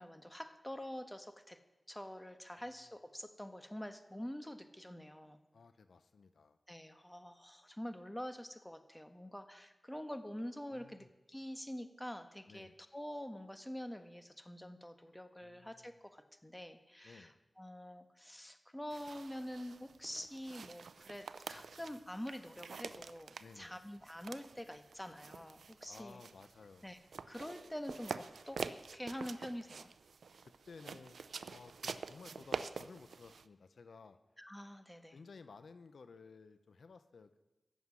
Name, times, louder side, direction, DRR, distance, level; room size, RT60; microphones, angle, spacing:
voice 1, 0.0-1.6 1.9-5.4 6.7-17.3 17.6-26.2 26.8-27.0 27.3-28.6 28.9-29.9 34.4-35.2, equal, 10° left, 8 dB, 1.6 m, -46 dB
voice 2, 5.5-6.6 10.7-11.1 12.5-12.8 15.4-16.0 17.0-17.4 21.5-21.8 23.4-23.8 25.9-27.0 30.4-34.2 35.1-37.4, left 4 dB, 85° left, 10 dB, 0.8 m, -56 dB
sound 1, 18.9-33.5, right 5 dB, 90° right, 0.5 m, -47 dB
15.0 x 7.3 x 9.8 m, 1.1 s
cardioid pair, 40°, 0 cm